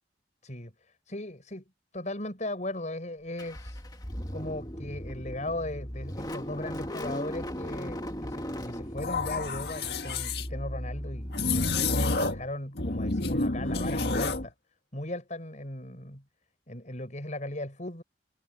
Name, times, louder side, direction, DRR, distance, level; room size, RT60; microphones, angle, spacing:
voice 1, 0.4-1.6 1.9-3.8 4.3-11.9 12.3-14.5 14.9-16.2 16.7-18.0, left 1 dB, 45° left, 6.8 m, -37 dB
Car / Engine starting, 3.4-12.1, equal, 20° left, 2.0 m, -38 dB
sound 1, 9.0-10.5 11.3-12.5 12.8-14.5, left 3 dB, 65° left, 1.8 m, -29 dB
head